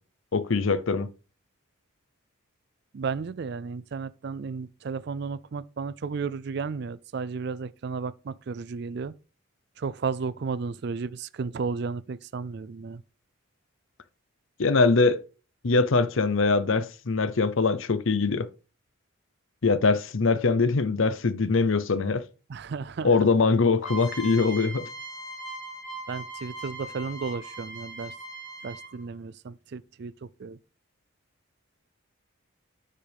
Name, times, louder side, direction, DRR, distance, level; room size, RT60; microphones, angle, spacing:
voice 1, 0.3-1.1 14.6-15.2 15.6-18.5 19.6-22.2 23.0-24.9, left 4 dB, 70° left, 0.7 m, -22 dB
voice 2, 2.9-9.1 9.8-13.0 22.5-23.2 26.1-28.1 28.6-30.6, right 5 dB, 50° right, 0.4 m, -33 dB
sound 1, 23.8-29.1, right 2 dB, 30° left, 4.8 m, -39 dB
10.0 x 5.6 x 3.5 m
head